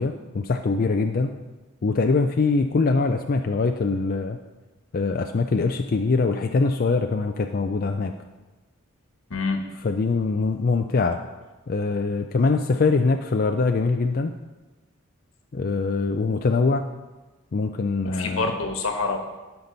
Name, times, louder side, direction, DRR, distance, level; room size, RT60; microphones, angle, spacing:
voice 1, 0.0-1.4 1.8-4.4 4.9-8.1 9.8-11.2 11.7-14.3 15.5-16.8 17.5-18.5, left 4 dB, 45° left, 5 dB, 0.4 m, -23 dB
voice 2, 18.0-19.2, left 3 dB, 80° left, 4 dB, 1.3 m, -26 dB
15.5 x 5.9 x 4.0 m, 1.2 s
head